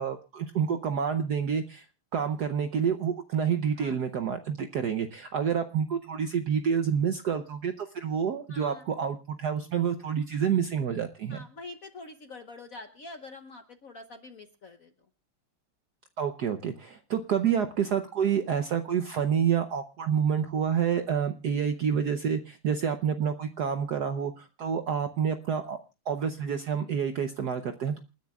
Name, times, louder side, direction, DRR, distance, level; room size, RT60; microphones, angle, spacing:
voice 1, 0.0-1.8 2.1-11.4 16.2-25.8 26.1-28.0, right 7 dB, 60° right, 7 dB, 1.2 m, -28 dB
voice 2, 8.5-8.8 11.3-14.9, left 3 dB, 55° left, 6 dB, 1.1 m, -45 dB
28.0 x 10.5 x 2.3 m, 0.29 s
omnidirectional pair, 2.4 m